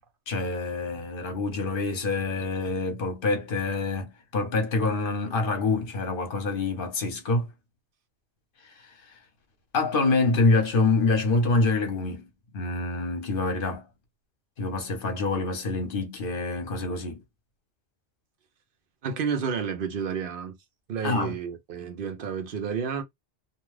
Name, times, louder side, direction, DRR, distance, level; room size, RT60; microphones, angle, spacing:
voice 1, 0.3-7.5 9.7-12.3 12.5-13.8 14.6-17.2 21.0-21.3, left 3 dB, 55° left, 1.0 m, -26 dB
voice 2, 19.0-20.6 20.9-23.0, right 6 dB, 60° right, 0.7 m, -30 dB
2.6 x 2.3 x 3.1 m
omnidirectional pair, 1.2 m